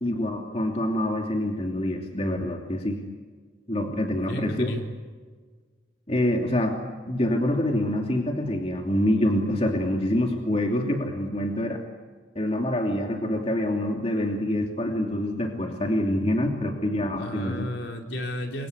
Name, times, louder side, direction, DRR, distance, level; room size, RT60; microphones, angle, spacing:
voice 1, 0.0-3.0 3.7-4.7 6.1-6.8 7.1-11.8 12.3-17.7, left 1 dB, 30° left, 2 dB, 2.8 m, -26 dB
voice 2, 4.3-4.8 17.2-18.7, equal, 60° left, 3 dB, 4.1 m, -33 dB
28.5 x 24.0 x 8.2 m, 1.5 s
head